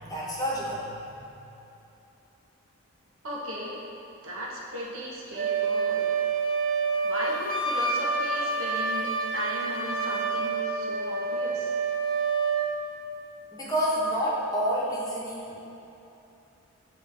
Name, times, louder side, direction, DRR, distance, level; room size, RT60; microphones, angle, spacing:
voice 1, 0.0-1.0 13.5-15.6, equal, 15° left, -7 dB, 1.0 m, -29 dB
voice 2, 3.2-3.9 4.2-6.1 7.0-11.7, equal, 75° right, -4 dB, 1.0 m, -36 dB
Wind instrument woodwind instrument, 5.3-12.8, right 4 dB, 45° right, 0.7 m, -28 dB
8.7 x 3.1 x 3.4 m, 2.9 s
head